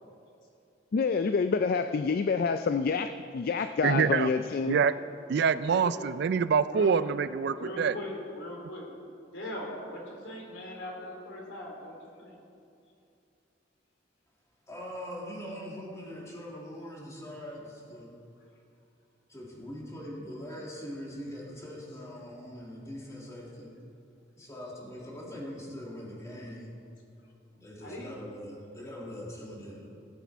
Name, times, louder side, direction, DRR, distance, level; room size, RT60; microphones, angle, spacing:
voice 1, 0.9-4.8, left 5 dB, 50° left, 9 dB, 0.4 m, -27 dB
voice 2, 3.8-4.3 4.7-4.9 5.3-8.0, right 6 dB, 60° right, 14 dB, 0.3 m, -25 dB
voice 3, 5.6-5.9 6.6-6.9 7.5-8.9 9.2-12.4 23.4-23.5 27.8-28.1, left 1 dB, 75° left, -1 dB, 2.9 m, -40 dB
voice 4, 14.7-18.1 19.3-23.7 24.4-26.7 27.6-29.9, equal, 15° left, -4 dB, 2.3 m, -42 dB
18.0 x 8.3 x 4.5 m, 2.5 s
head